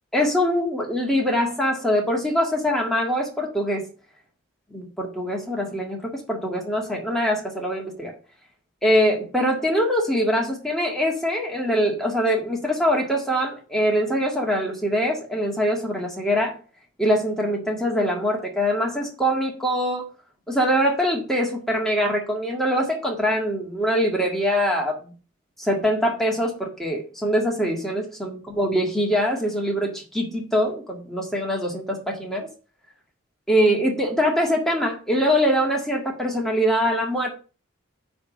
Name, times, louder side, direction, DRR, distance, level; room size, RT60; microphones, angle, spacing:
voice 1, 0.1-3.8 4.7-8.1 8.8-16.6 17.0-20.1 20.5-25.1 25.6-32.5 33.5-37.3, equal, ahead, -1 dB, 1.7 m, -23 dB
9.4 x 3.6 x 6.2 m, 0.36 s
head